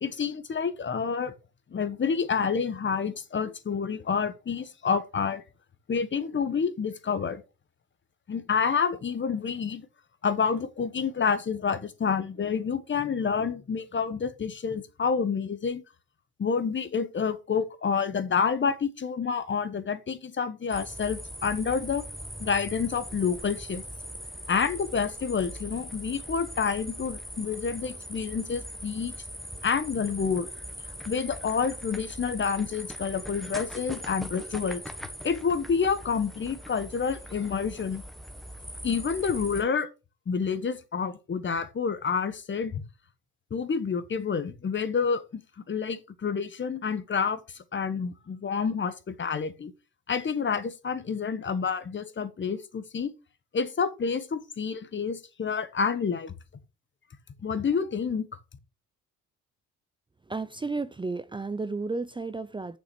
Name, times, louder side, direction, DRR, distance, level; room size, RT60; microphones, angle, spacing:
voice 1, 0.0-1.3 1.7-5.4 5.9-7.4 8.3-9.9 10.2-15.8 16.4-22.0 22.4-23.8 24.5-29.1 29.6-30.5 31.0-34.8 35.2-38.0 38.8-39.9 40.3-42.8 43.5-45.4 45.7-49.7 50.1-53.1 53.5-56.3 57.4-58.3, left 6 dB, 40° left, 1.4 m, -28 dB
sound 1, 20.7-39.6, equal, ahead, 1.5 m, -41 dB
voice 2, 60.2-62.8, right 3 dB, 15° right, 0.6 m, -33 dB
7.1 x 6.1 x 6.1 m
cardioid pair, 90°, 30 cm